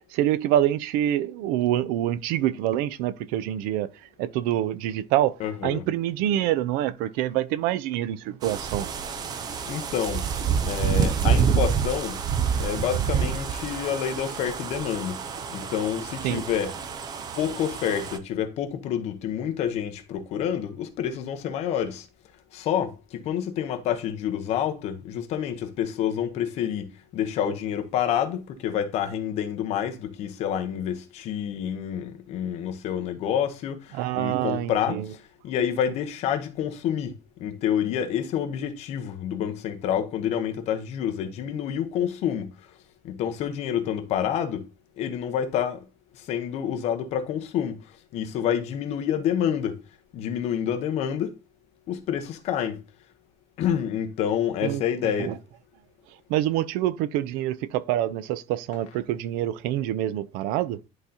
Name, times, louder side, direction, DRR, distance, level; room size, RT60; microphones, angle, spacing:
voice 1, 0.1-3.9 4.2-5.3 5.6-8.9 16.2-16.4 33.9-35.1 54.6-54.8 55.2-55.3 56.3-60.8, right 12 dB, 80° right, 0.5 m, -26 dB
voice 2, 5.4-5.9 9.7-10.2 10.6-12.2 12.6-15.2 15.5-16.7 17.4-22.0 22.5-35.0 35.4-37.1 37.4-42.5 43.0-44.6 45.0-45.8 46.3-47.8 48.1-49.8 50.1-51.3 51.9-52.8 53.6-55.4, left 9 dB, 45° left, 0.9 m, -28 dB
sound 1, 8.4-18.2, right 7 dB, 25° right, 0.6 m, -27 dB
10.5 x 3.9 x 2.8 m
cardioid pair, 180°, 15 cm